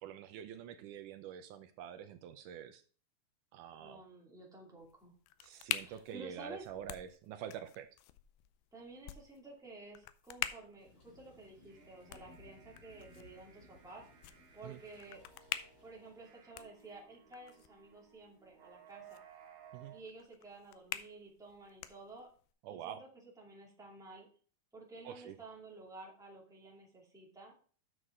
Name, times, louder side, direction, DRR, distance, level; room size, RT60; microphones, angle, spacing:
voice 1, 0.0-2.8 3.5-4.0 5.4-7.9 14.6-14.8 19.7-19.9 22.6-23.0 25.1-25.4, right 10 dB, 80° right, 8 dB, 1.9 m, -46 dB
voice 2, 3.8-5.1 5.8-6.6 8.7-14.0 14.5-15.2 15.8-19.2 19.9-22.3 22.7-24.3 24.7-27.6, right 2 dB, ahead, -2 dB, 1.5 m, -52 dB
sound 1, 4.8-22.5, left 14 dB, 85° left, 2.5 m, -47 dB
Thunder / Rain, 10.8-16.5, left 3 dB, 65° left, 6.3 m, -62 dB
sound 2, 11.6-20.0, right 8 dB, 60° right, 2.7 m, -60 dB
9.5 x 6.4 x 3.8 m, 0.42 s
omnidirectional pair, 4.2 m